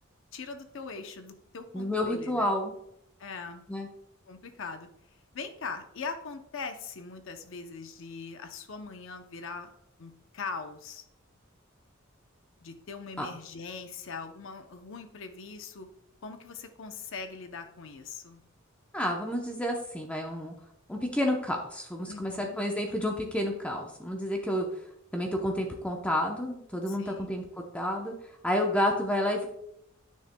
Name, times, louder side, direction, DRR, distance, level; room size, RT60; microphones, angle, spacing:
voice 1, 0.3-2.5 3.2-3.6 4.3-4.9 5.3-9.7 10.0-11.0 12.6-15.9 16.2-18.4 22.1-22.6 26.9-27.3, left 4 dB, 65° left, 7 dB, 0.6 m, -41 dB
voice 2, 1.7-2.7 3.7-3.9 13.2-13.3 18.9-20.5 20.9-24.7 25.1-27.4 27.7-28.1 28.4-29.5, left 1 dB, 5° left, 1 dB, 0.7 m, -30 dB
10.0 x 6.4 x 2.2 m, 0.78 s
head